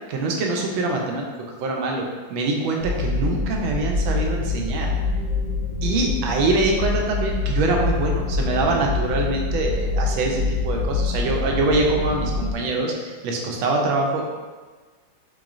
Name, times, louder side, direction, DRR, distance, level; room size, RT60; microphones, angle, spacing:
voice 1, 0.1-1.2 1.6-2.0 2.3-4.9 5.8-14.2, right 2 dB, 75° right, 0 dB, 1.4 m, -24 dB
sound 1, 2.8-12.5, left 3 dB, 70° left, 1.1 m, -25 dB
4.4 x 3.0 x 2.4 m, 1.3 s
omnidirectional pair, 2.3 m